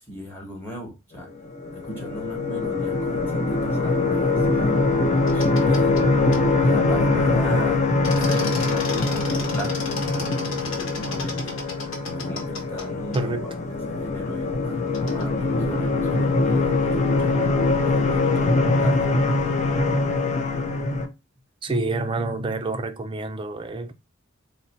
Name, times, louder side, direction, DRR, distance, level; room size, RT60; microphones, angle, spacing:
voice 1, 0.1-1.3 1.7-4.8 5.3-6.1 6.6-11.5 12.1-14.6 15.1-17.5 17.8-19.1 21.7-21.8, equal, 10° left, 1.1 m, -37 dB
sound 1, 1.6-21.1, left 3 dB, 35° left, 0.6 m, -23 dB
sound 2, 5.3-6.0 6.3-6.4 8.0-12.9 13.1-13.2 14.9-15.3, left 3 dB, 65° left, 1.0 m, -34 dB
voice 2, 13.1-13.5 21.6-23.9, right 2 dB, 25° right, 0.4 m, -27 dB
4.0 x 2.1 x 4.1 m
head